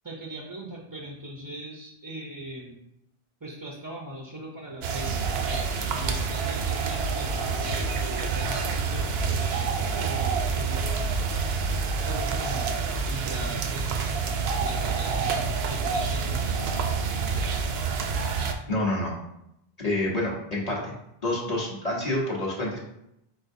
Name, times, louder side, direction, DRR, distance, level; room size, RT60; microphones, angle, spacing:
voice 1, 0.0-2.8 3.4-11.1 11.9-12.7 13.1-13.9 14.6-15.2 15.7-17.6 18.0-18.1, right 1 dB, 25° right, -2 dB, 0.5 m, -40 dB
sound 1, 4.8-18.5, right 5 dB, 75° right, 0.8 m, -27 dB
voice 2, 18.7-19.1 19.8-20.9 21.2-22.8, left 1 dB, 40° left, -5 dB, 1.1 m, -28 dB
4.5 x 4.3 x 2.6 m, 0.81 s
omnidirectional pair, 1.1 m